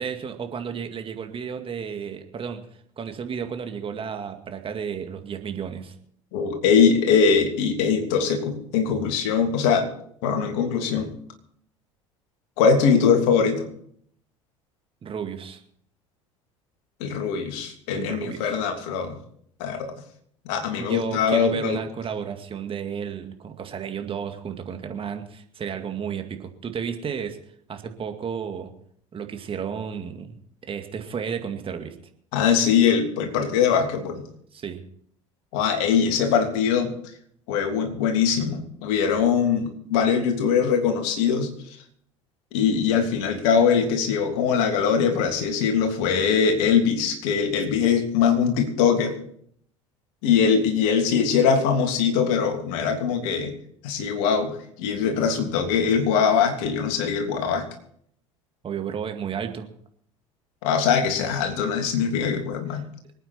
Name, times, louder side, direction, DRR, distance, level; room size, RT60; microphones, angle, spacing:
voice 1, 0.0-2.6 3.0-6.0 15.0-15.6 17.9-18.6 20.8-27.4 27.7-28.7 29.1-32.0 34.5-34.8 58.6-59.7 62.7-62.8, right 7 dB, 35° right, 6 dB, 2.1 m, -32 dB
voice 2, 6.3-9.9 10.2-11.1 12.6-13.7 17.0-19.2 19.6-19.9 20.4-21.8 32.3-34.2 35.5-36.9 37.5-41.8 42.5-49.1 50.2-53.5 53.8-57.7 60.6-62.8, left 6 dB, 65° left, 4 dB, 3.1 m, -22 dB
25.5 x 9.2 x 4.5 m, 0.64 s
figure-of-eight pair, 65°, 17 cm